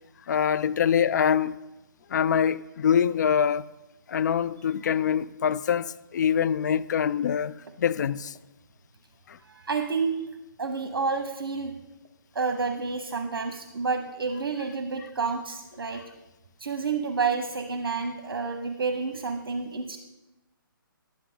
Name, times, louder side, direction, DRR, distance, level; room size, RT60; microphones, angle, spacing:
voice 1, 0.3-1.6 2.1-3.7 4.1-8.3 9.3-9.4, left 8 dB, 50° left, 0.4 m, -24 dB
voice 2, 9.5-10.2 10.6-11.7 12.3-16.0 16.6-20.0, right 4 dB, 75° right, 1.1 m, -29 dB
11.5 x 10.0 x 3.8 m
hypercardioid pair, 150°, 12 cm